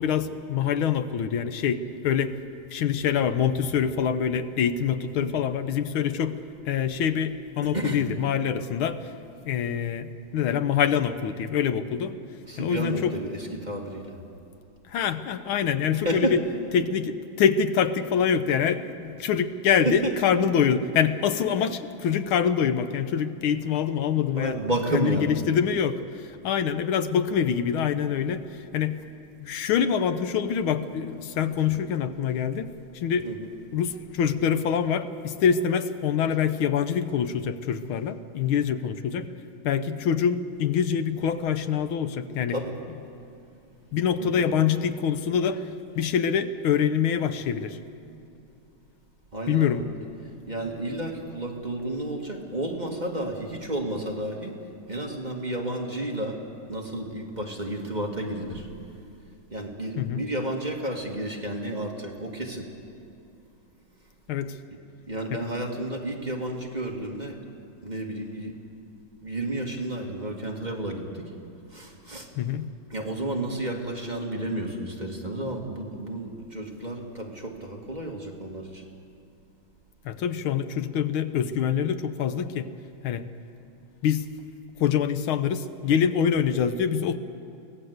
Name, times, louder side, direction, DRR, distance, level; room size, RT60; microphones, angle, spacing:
voice 1, 0.0-2.3 2.7-6.4 6.7-9.1 9.5-12.2 12.6-13.1 14.9-16.4 16.7-24.6 24.9-29.0 29.4-33.3 33.7-39.3 39.6-42.5 43.9-47.8 49.5-49.9 60.0-60.2 64.3-64.6 65.3-65.4 72.4-72.7 80.0-82.7 83.0-83.3 84.0-84.3 84.8-87.2, left 7 dB, 90° left, 11 dB, 1.7 m, -25 dB
voice 2, 7.6-8.1 12.5-14.2 16.0-16.4 19.7-20.2 24.4-25.4 33.2-33.5 42.5-42.8 44.2-44.6 49.3-49.8 50.2-54.6 54.9-56.4 56.7-58.7 59.5-62.7 65.1-67.4 67.8-68.6 69.2-71.3 71.7-72.3 72.9-78.9, right 1 dB, 20° right, 0 dB, 1.9 m, -31 dB
23.5 x 17.5 x 8.0 m, 2.7 s
omnidirectional pair, 2.2 m